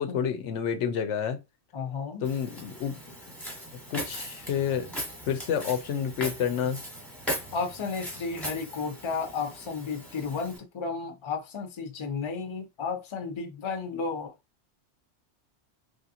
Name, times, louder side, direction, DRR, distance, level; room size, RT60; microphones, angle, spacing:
voice 1, 0.0-1.4 2.2-2.9 3.9-4.9 5.3-6.8, left 8 dB, 85° left, 0.9 m, -29 dB
voice 2, 1.7-2.2 7.5-14.3, left 5 dB, 35° left, 0.5 m, -33 dB
Walk footsteps, 2.2-10.6, equal, ahead, 0.9 m, -39 dB
3.2 x 2.5 x 2.7 m
omnidirectional pair, 1.2 m